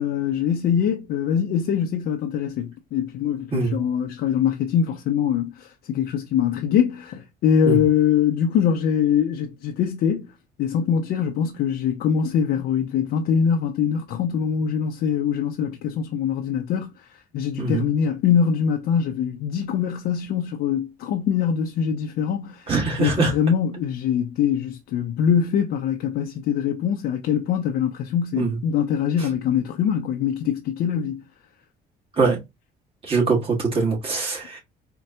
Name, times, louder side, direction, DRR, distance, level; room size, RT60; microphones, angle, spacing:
voice 1, 0.0-10.3 10.6-17.1 17.3-22.7 23.0-31.2, left 8 dB, 65° left, 0.5 m, -23 dB
voice 2, 22.7-23.3 28.4-28.6 32.2-32.4 33.0-34.6, right 4 dB, 35° right, 1.5 m, -22 dB
4.3 x 2.2 x 2.7 m
cardioid pair, 110°, 17 cm